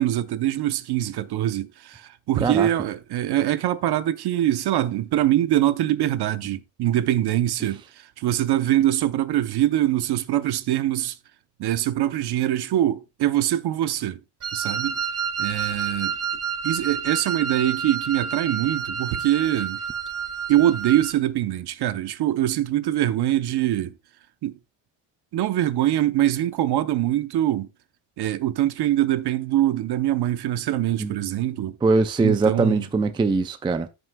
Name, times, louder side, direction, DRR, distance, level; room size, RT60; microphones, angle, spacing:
voice 1, 0.0-7.8 8.2-11.1 11.6-14.2 14.5-15.0 15.4-16.1 16.6-19.8 20.5-23.9 24.4-24.5 25.3-27.7 28.2-31.8 32.2-32.8, right 13 dB, 55° right, 0.8 m, -23 dB
Wind instrument woodwind instrument, 14.4-21.1, right 6 dB, 30° right, 1.1 m, -29 dB
voice 2, 31.8-33.9, right 3 dB, 10° right, 0.4 m, -21 dB
13.5 x 6.4 x 2.3 m
cardioid pair, 140°, 48 cm